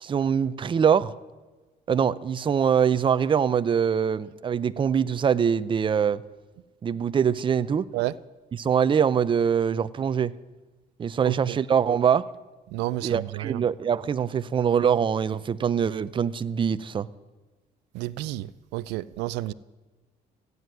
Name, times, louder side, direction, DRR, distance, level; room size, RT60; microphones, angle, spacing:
voice 1, 0.0-1.1 1.9-6.2 6.8-7.9 8.5-10.3 11.0-12.2 13.0-17.1, right 7 dB, 30° right, 0.6 m, -23 dB
voice 2, 11.2-11.6 12.7-13.6 17.9-18.5 18.7-19.5, right 17 dB, 90° right, 0.5 m, -30 dB
15.5 x 9.5 x 9.2 m
cardioid pair, 110°, 17 cm